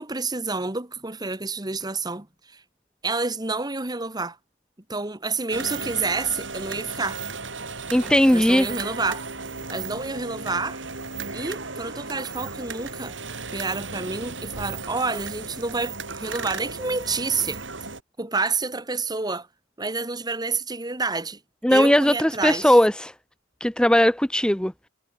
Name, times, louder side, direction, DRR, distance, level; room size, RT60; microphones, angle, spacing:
voice 1, 0.0-2.3 2.5-2.6 3.0-4.4 4.9-7.2 8.3-9.2 9.7-10.8 11.3-13.2 13.5-17.6 18.2-19.5 19.8-21.4 21.7-22.8, right 3 dB, 20° right, 1.7 m, -28 dB
sound 1, 5.5-18.0, right 4 dB, 65° right, 7.2 m, -35 dB
voice 2, 7.9-8.7 21.6-23.1 23.6-24.7, equal, 5° left, 0.7 m, -18 dB
head